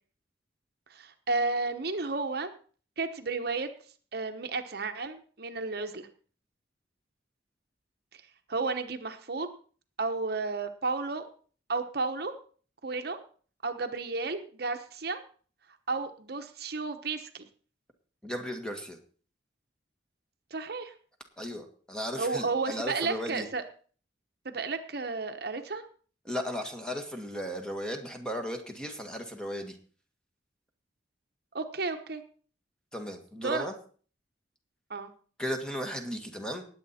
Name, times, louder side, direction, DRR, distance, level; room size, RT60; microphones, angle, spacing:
voice 1, 0.9-2.5 3.0-3.7 4.1-6.1 8.1-8.2 8.5-9.5 10.0-11.3 11.7-12.3 12.8-13.2 13.6-15.2 15.9-17.5 20.5-20.9 22.2-23.6 24.4-25.8 31.5-32.2 33.4-33.7 34.9-35.1, right 3 dB, 60° right, 7 dB, 1.1 m, -32 dB
voice 2, 18.2-19.0 21.4-23.5 26.2-29.8 32.9-33.7 35.4-36.6, equal, 5° left, 4 dB, 1.7 m, -35 dB
19.0 x 8.2 x 4.3 m, 0.42 s
head